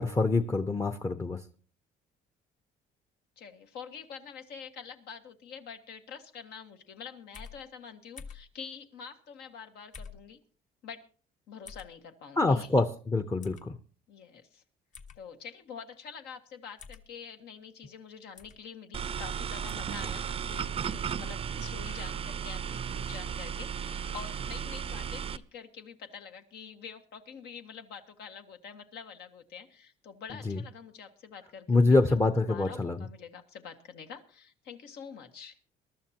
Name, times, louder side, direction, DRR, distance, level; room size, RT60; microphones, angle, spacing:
voice 1, 0.0-1.4 12.4-13.8 30.4-30.6 31.7-33.0, left 3 dB, 20° left, 7 dB, 0.7 m, -25 dB
voice 2, 3.4-10.4 10.8-11.0 11.5-12.8 14.1-14.6 15.2-35.6, left 6 dB, 75° left, 5 dB, 1.7 m, -46 dB
sound 1, 7.3-7.6 8.2-8.5 9.9-10.2 11.7-11.9 13.4-13.6 14.9-15.2 16.8-17.1 18.4-18.6 19.7-19.9, left 5 dB, 50° left, 1.2 m, -46 dB
sound 2, 18.9-25.4, right 7 dB, 35° right, 0.5 m, -35 dB
22.5 x 12.5 x 2.9 m, 0.41 s
cardioid pair, 110°, 17 cm